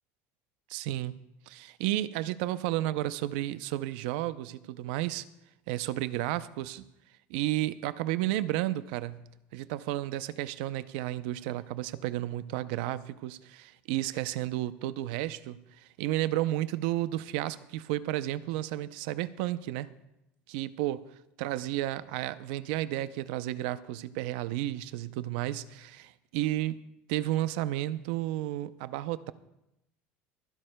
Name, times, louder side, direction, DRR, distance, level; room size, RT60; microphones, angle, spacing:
voice 1, 0.7-1.1 1.5-5.2 5.7-6.8 7.3-9.2 9.5-19.9 20.5-21.0 21.4-26.7 27.1-29.3, right 15 dB, 75° right, 15 dB, 0.5 m, -32 dB
24.0 x 11.0 x 2.2 m, 0.89 s
cardioid pair, 175°, 6 cm